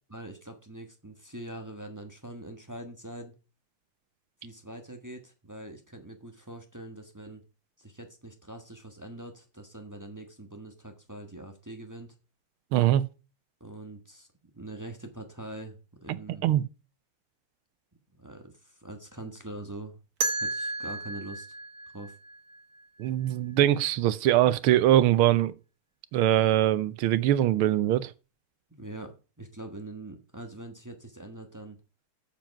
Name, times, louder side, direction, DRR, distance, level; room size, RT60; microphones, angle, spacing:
voice 1, 0.1-3.3 4.4-7.4 7.8-12.1 13.6-14.3 14.5-15.8 16.0-16.4 18.1-20.0 20.4-21.5 21.9-22.1 28.7-31.8, right 2 dB, 10° right, 0.9 m, -43 dB
voice 2, 12.7-13.0 16.4-16.6 23.0-25.5 26.1-28.1, right 12 dB, 75° right, 1.5 m, -22 dB
sound 1, 20.2-23.1, right 2 dB, 50° right, 1.5 m, -33 dB
7.5 x 7.1 x 5.8 m
omnidirectional pair, 2.4 m